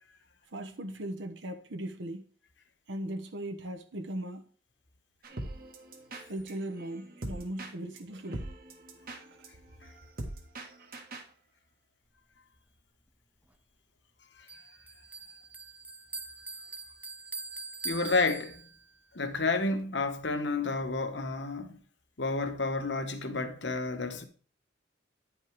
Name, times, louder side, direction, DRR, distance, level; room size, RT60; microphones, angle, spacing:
voice 1, 0.5-2.2 2.9-4.5 6.3-8.5, right 1 dB, 80° right, 1.0 m, -38 dB
sound 1, 5.2-11.3, right 1 dB, 50° right, 1.4 m, -43 dB
Bell, 14.5-19.0, right 3 dB, 10° right, 0.6 m, -43 dB
voice 2, 17.8-18.6 19.1-21.8 22.2-24.3, left 3 dB, 70° left, 1.2 m, -30 dB
9.7 x 5.4 x 4.7 m
head